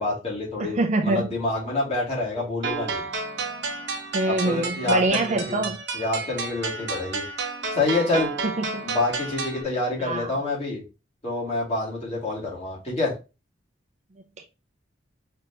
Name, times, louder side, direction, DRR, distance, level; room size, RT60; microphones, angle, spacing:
voice 1, 0.0-3.0 4.3-5.7 5.9-7.2 7.7-8.3 8.8-10.9 11.2-13.2, left 2 dB, 35° left, 2.5 m, -27 dB
voice 2, 0.6-1.3 4.1-5.8 8.4-8.8 10.0-10.3 14.4-14.5, right 2 dB, 35° right, 0.5 m, -25 dB
sound 1, 2.6-9.6, right 4 dB, 60° right, 0.9 m, -31 dB
5.1 x 3.4 x 2.9 m
head